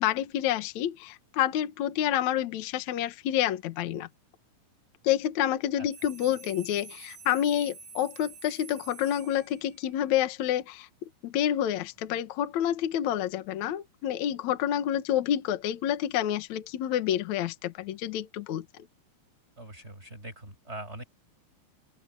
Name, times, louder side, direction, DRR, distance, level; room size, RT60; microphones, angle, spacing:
voice 1, 0.0-4.1 5.0-10.9 11.2-18.9, left 11 dB, 70° left, 1.7 m, -28 dB
sound 1, 5.9-9.9, right 4 dB, 50° right, 5.4 m, -48 dB
voice 2, 19.6-21.0, right 1 dB, 15° right, 6.7 m, -42 dB
open air
omnidirectional pair, 5.4 m